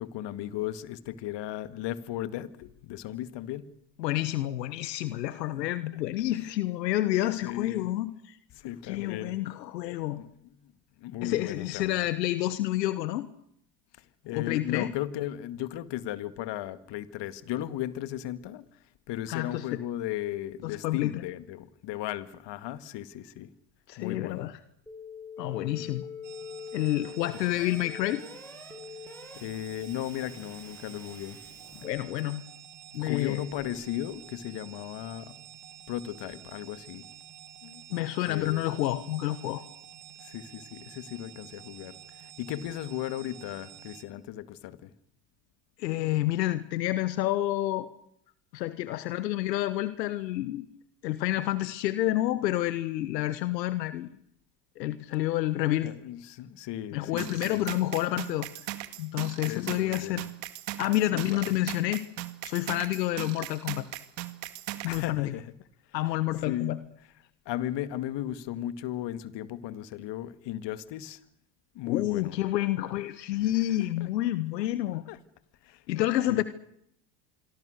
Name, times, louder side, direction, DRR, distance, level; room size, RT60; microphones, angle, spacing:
voice 1, 0.0-3.7 7.4-7.9 8.5-9.3 10.0-10.3 11.0-12.0 14.2-18.6 19.1-23.5 24.0-24.5 25.5-25.9 29.4-31.4 33.0-35.4 35.9-37.0 37.6-37.8 38.3-38.6 40.2-42.0 42.4-44.9 55.8-57.6 59.3-60.3 61.1-61.4 64.9-65.4 66.4-66.8 67.5-71.2 71.8-72.4 75.1-75.2 75.7-75.8 76.3-76.4, left 12 dB, 60° left, 13 dB, 2.1 m, -36 dB
voice 2, 4.0-8.4 8.8-10.2 11.2-13.3 14.3-14.9 19.3-19.8 20.6-21.2 23.9-24.6 25.4-26.1 26.7-28.2 31.7-32.4 32.9-33.4 37.9-39.6 45.8-47.9 48.5-50.7 51.0-54.1 54.8-55.9 56.9-58.5 59.0-60.2 60.8-62.0 62.4-63.9 64.8-65.3 65.9-66.8 71.8-75.0 75.9-76.4, left 15 dB, 90° left, 13 dB, 1.3 m, -29 dB
sound 1, 24.9-31.9, left 5 dB, 5° left, 7.0 m, -45 dB
sound 2, 26.2-44.0, right 10 dB, 85° right, 2.7 m, -49 dB
sound 3, 57.2-65.1, right 15 dB, 60° right, 2.2 m, -39 dB
26.5 x 23.5 x 6.6 m, 0.73 s
hypercardioid pair, 80°, 48 cm